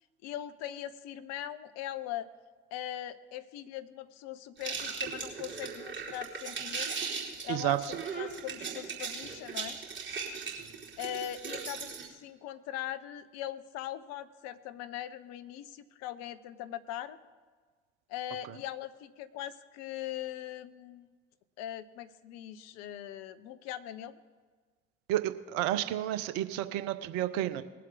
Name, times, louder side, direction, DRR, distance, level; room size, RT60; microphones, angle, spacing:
voice 1, 0.2-2.3 2.7-7.1 7.4-7.9 8.2-9.8 11.0-17.2 18.1-21.1 21.6-24.2, left 12 dB, 60° left, 12 dB, 0.8 m, -40 dB
sound 1, 4.6-12.1, right 5 dB, 40° right, 3.6 m, -38 dB
voice 2, 7.5-8.0 18.4-18.6 25.1-27.6, right 13 dB, 65° right, 12 dB, 0.8 m, -31 dB
20.5 x 7.6 x 3.9 m, 1.4 s
figure-of-eight pair, 50°, 29 cm